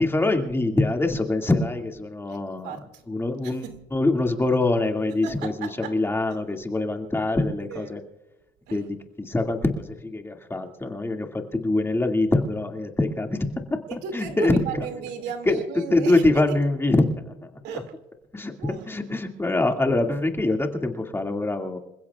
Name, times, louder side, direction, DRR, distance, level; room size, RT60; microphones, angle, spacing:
voice 1, 0.0-2.7 3.1-8.0 8.7-13.4 13.7-14.9 15.5-15.6 15.9-17.5 18.3-21.8, left 2 dB, 15° left, 3 dB, 2.2 m, -24 dB
voice 2, 2.3-3.0 3.4-3.8 5.2-6.0 7.7-7.9 8.7-8.9 13.9-16.6 17.6-17.9 18.6-19.1, right 7 dB, 85° right, 7 dB, 2.4 m, -35 dB
27.0 x 16.0 x 2.4 m, 1.0 s
cardioid pair, 110°, 17 cm